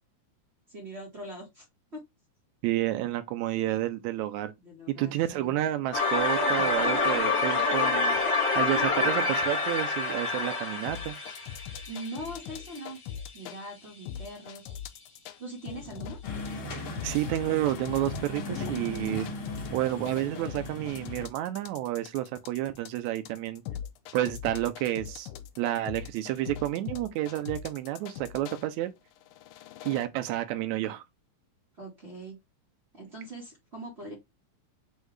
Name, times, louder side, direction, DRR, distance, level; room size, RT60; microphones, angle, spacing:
voice 1, 0.7-1.6 1.9-2.0 4.6-5.5 11.9-13.0 13.3-14.7 15.4-16.2 31.8-32.4 32.9-34.1, right 1 dB, 35° right, 1.0 m, -41 dB
voice 2, 2.6-4.5 4.9-8.2 8.6-11.2 17.0-19.3 19.7-23.6 24.1-25.3 25.6-28.9 29.8-31.0, right 14 dB, 75° right, 1.8 m, -30 dB
sound 1, 5.9-12.8, left 3 dB, 30° left, 1.4 m, -27 dB
sound 2, 10.9-13.6 14.1-15.4 15.7-28.6 29.2-30.1, left 9 dB, 80° left, 1.9 m, -41 dB
sound 3, 16.2-21.3, left 2 dB, 50° left, 1.7 m, -37 dB
6.3 x 2.4 x 3.2 m
omnidirectional pair, 3.7 m